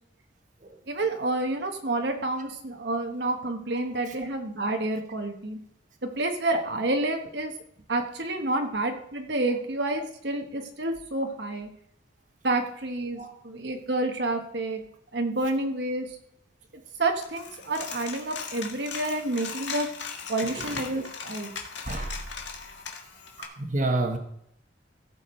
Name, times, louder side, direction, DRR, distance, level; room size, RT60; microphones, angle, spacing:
voice 1, 0.9-5.6 6.0-7.6 7.9-11.7 12.4-14.8 15.1-16.1 17.0-19.9 20.3-21.5, right 2 dB, 65° right, 1.3 m, -29 dB
Coin (dropping), 17.2-23.4, left 6 dB, 75° left, 1.7 m, -38 dB
voice 2, 20.5-20.8 21.9-22.3 23.4-24.2, right 2 dB, 45° right, 1.3 m, -29 dB
15.5 x 7.2 x 4.4 m
head